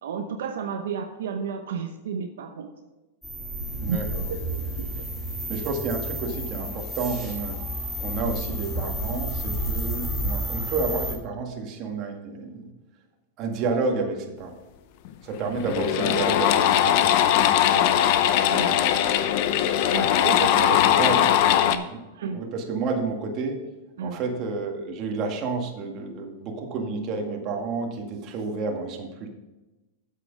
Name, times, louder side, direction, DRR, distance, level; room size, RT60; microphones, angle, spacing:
voice 1, 0.0-2.7 3.9-4.0 4.3-4.9 17.5-18.0 18.5-18.8 19.9-21.1 21.6-21.9 22.1-22.4 24.0-24.2, right 6 dB, 80° right, 5 dB, 0.9 m, -32 dB
sound 1, 3.2-11.1, equal, ahead, 2.6 m, -31 dB
voice 2, 5.5-7.6 8.0-12.7 13.4-14.6 15.2-17.5 20.7-21.3 22.3-23.6 24.0-29.3, right 4 dB, 40° right, 2 dB, 1.9 m, -30 dB
sound 2, 15.0-15.1 15.5-21.8, left 10 dB, 55° left, 0.7 m, -20 dB
8.2 x 7.7 x 5.3 m, 1.1 s
supercardioid pair, 135°, 0 cm